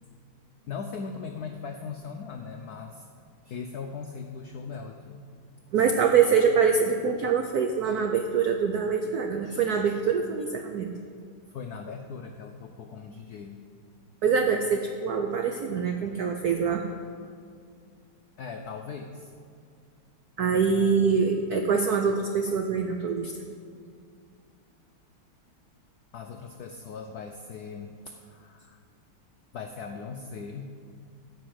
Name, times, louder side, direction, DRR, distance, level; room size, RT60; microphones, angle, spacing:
voice 1, 0.7-3.1 3.5-5.2 11.5-13.6 18.4-19.3 26.1-28.8 29.5-30.7, left 5 dB, 80° left, 4 dB, 0.8 m, -39 dB
voice 2, 5.7-10.9 14.2-16.8 20.4-23.4, right 6 dB, 80° right, 5 dB, 0.8 m, -24 dB
14.5 x 5.5 x 7.8 m, 2.3 s
omnidirectional pair, 2.4 m